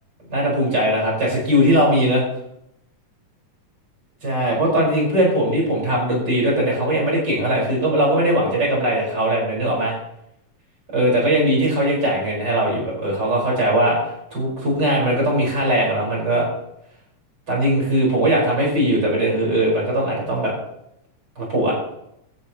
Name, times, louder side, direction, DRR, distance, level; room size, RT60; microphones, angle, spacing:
voice 1, 0.3-2.2 4.2-9.9 10.9-14.0 14.3-16.4 17.5-20.5 21.4-21.7, right 1 dB, 30° right, -3 dB, 5.5 m, -20 dB
17.0 x 12.0 x 3.0 m, 0.79 s
omnidirectional pair, 3.7 m